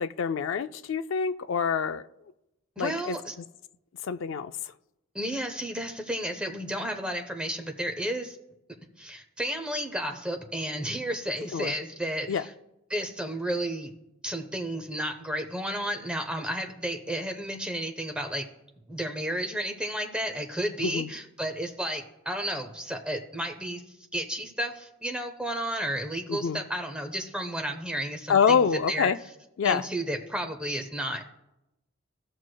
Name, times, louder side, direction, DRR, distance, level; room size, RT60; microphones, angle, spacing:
voice 1, 0.0-2.0 2.8-3.2 4.0-4.5 11.5-11.7 12.3-12.4 20.8-21.1 26.3-26.6 28.3-29.2 29.6-29.8, left 6 dB, 65° left, 0.4 m, -26 dB
voice 2, 2.8-3.3 5.1-8.4 9.0-12.5 12.9-13.9 14.2-18.5 18.9-23.8 24.1-29.1 29.6-31.3, equal, 5° right, 0.6 m, -32 dB
15.5 x 6.2 x 2.2 m
head